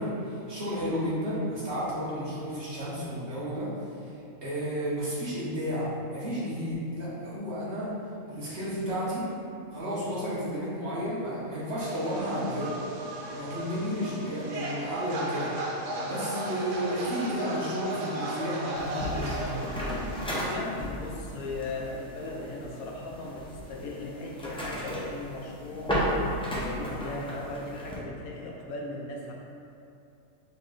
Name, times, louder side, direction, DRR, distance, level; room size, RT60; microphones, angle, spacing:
voice 1, 0.0-3.7 4.0-4.1 4.4-7.9 8.3-9.2 9.7-12.7 13.3-15.5 16.0-19.5, equal, 50° right, -9 dB, 1.3 m, -32 dB
sound 1, 11.8-20.4, right 1 dB, 70° right, 0.9 m, -35 dB
sound 2, 18.8-28.0, equal, 10° left, 0.4 m, -34 dB
voice 2, 20.5-26.0 26.5-29.3, left 2 dB, 85° left, -1 dB, 1.1 m, -38 dB
4.4 x 3.2 x 3.7 m, 2.7 s
omnidirectional pair, 1.5 m